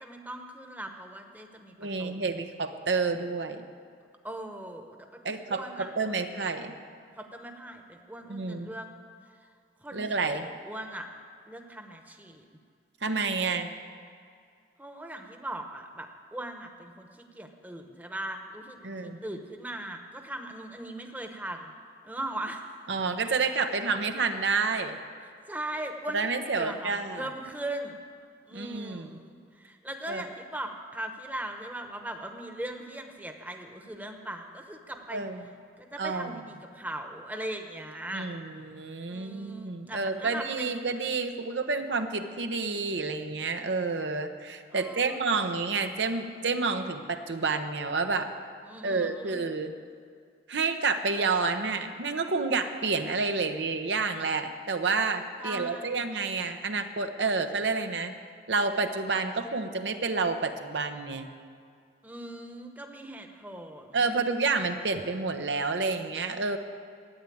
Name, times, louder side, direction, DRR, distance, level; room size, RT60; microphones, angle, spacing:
voice 1, 0.0-2.4 4.2-6.1 7.2-8.9 9.8-11.1 11.5-12.4 14.8-17.1 17.3-21.7 22.0-22.7 25.5-28.0 28.5-35.2 35.8-38.3 39.1-40.7 44.7-45.2 48.7-49.4 55.4-56.0 62.0-64.1, right 1 dB, 10° right, 4 dB, 1.0 m, -39 dB
voice 2, 1.8-3.7 5.2-6.7 8.3-8.7 9.9-10.5 13.0-13.7 18.8-19.2 22.9-25.0 26.1-27.3 28.5-29.2 30.1-30.2 35.1-35.4 36.0-36.3 38.1-48.3 48.8-49.7 50.5-58.1 58.5-61.3 63.9-66.6, right 4 dB, 80° right, 7 dB, 0.9 m, -29 dB
13.0 x 9.3 x 8.6 m, 2.2 s
head